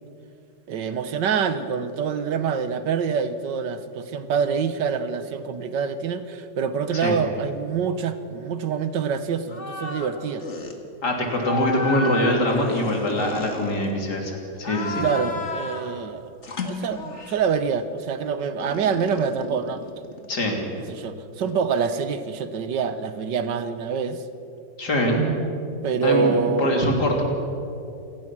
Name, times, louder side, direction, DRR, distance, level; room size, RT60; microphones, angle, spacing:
voice 1, 0.7-10.5 15.0-16.2 16.6-19.8 20.9-24.2 25.8-26.9, right 6 dB, 75° right, 11 dB, 1.6 m, -26 dB
sound 1, 9.5-10.1 10.4-10.8 11.4-14.1 14.6-15.9 16.4-17.5 18.6-20.4, left 3 dB, 40° left, 2.1 m, -32 dB
voice 2, 11.0-15.1 20.3-20.6 24.8-25.2 26.0-27.2, left 1 dB, 65° left, 1 dB, 3.8 m, -23 dB
27.5 x 18.0 x 6.1 m, 2.7 s
omnidirectional pair, 1.9 m